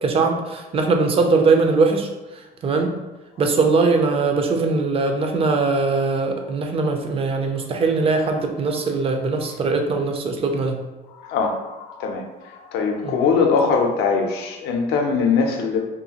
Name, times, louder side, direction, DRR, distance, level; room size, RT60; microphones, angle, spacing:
voice 1, 0.0-2.1 2.6-2.9 3.4-10.8 13.0-13.2, right 3 dB, 35° right, 4 dB, 0.4 m, -20 dB
voice 2, 11.2-11.6 11.9-12.2 12.7-15.9, left 5 dB, 85° left, 3 dB, 0.5 m, -21 dB
2.6 x 2.3 x 2.8 m, 1.1 s
cardioid pair, 110°, 17 cm